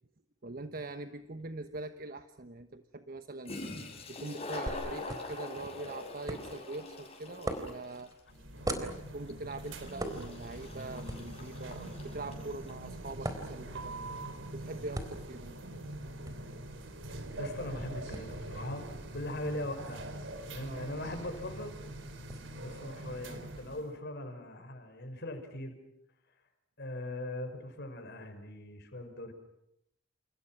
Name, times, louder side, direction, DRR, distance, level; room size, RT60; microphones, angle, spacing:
voice 1, 0.4-3.6 4.1-8.1 8.6-13.9 14.5-15.5 20.6-20.8, right 2 dB, 50° right, 9 dB, 1.2 m, -43 dB
Toilet flush, 1.4-1.5 3.2-3.3 3.4-12.8, left 2 dB, 35° left, 7.1 m, -44 dB
sound 1, 4.7-22.4, right 1 dB, 20° right, 4.0 m, -45 dB
sound 2, 8.3-23.9, right 1 dB, 70° right, 3.9 m, -43 dB
voice 2, 17.4-20.0 20.5-21.8 22.6-25.8 26.8-29.3, left 1 dB, 60° left, 7 dB, 5.6 m, -40 dB
30.0 x 28.5 x 6.1 m, 0.81 s
head